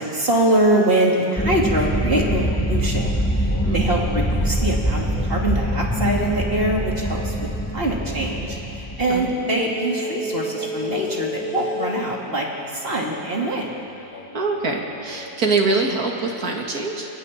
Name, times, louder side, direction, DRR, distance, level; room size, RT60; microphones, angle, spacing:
voice 1, 0.0-3.1 3.4-7.5 7.7-13.8, right 1 dB, 40° right, -2 dB, 2.9 m, -23 dB
sound 1, 1.2-7.6 8.0-16.0, left 2 dB, 75° left, 2.0 m, -35 dB
sound 2, 1.4-9.2, equal, 10° left, 2.2 m, -24 dB
voice 2, 14.3-17.1, right 3 dB, 85° right, 0 dB, 2.6 m, -24 dB
29.0 x 24.0 x 4.4 m, 2.8 s
omnidirectional pair, 1.6 m